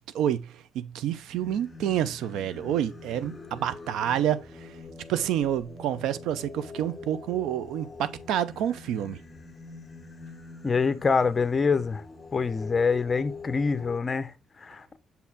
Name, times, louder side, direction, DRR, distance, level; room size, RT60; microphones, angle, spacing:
voice 1, 0.1-4.7 5.1-9.2, right 10 dB, 85° right, 0.6 m, -28 dB
Singing, 1.3-14.0, left 3 dB, 20° left, 1.3 m, -45 dB
voice 2, 10.6-12.0 12.3-15.0, left 5 dB, 35° left, 0.9 m, -25 dB
7.1 x 4.3 x 3.6 m
cardioid pair, 90°, 0 cm